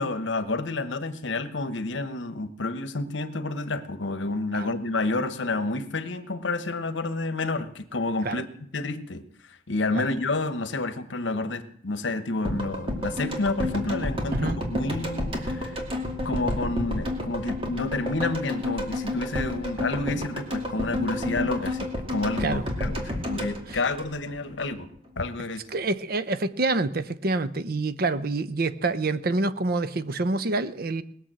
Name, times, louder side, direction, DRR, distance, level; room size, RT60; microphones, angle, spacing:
voice 1, 0.0-8.5 8.7-9.2 9.5-15.8 16.2-24.9 25.2-25.6, left 2 dB, 70° left, 1.1 m, -29 dB
sound 1, 12.5-24.6 24.9-25.0, left 1 dB, 30° right, 2.3 m, -30 dB
voice 2, 25.7-31.0, right 3 dB, 50° right, 0.7 m, -27 dB
20.0 x 7.1 x 7.5 m
head